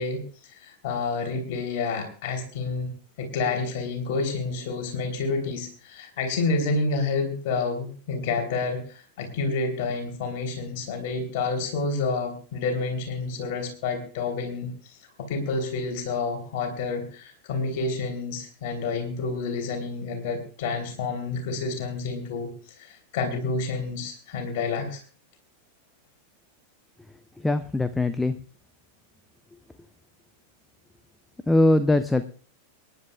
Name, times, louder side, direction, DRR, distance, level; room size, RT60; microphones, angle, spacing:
voice 1, 0.0-2.9 3.2-25.0, left 4 dB, 50° left, 3 dB, 3.3 m, -29 dB
voice 2, 27.4-28.3 31.5-32.2, left 2 dB, 5° left, 12 dB, 0.6 m, -21 dB
26.5 x 11.0 x 2.4 m, 0.39 s
figure-of-eight pair, 90°, 0 cm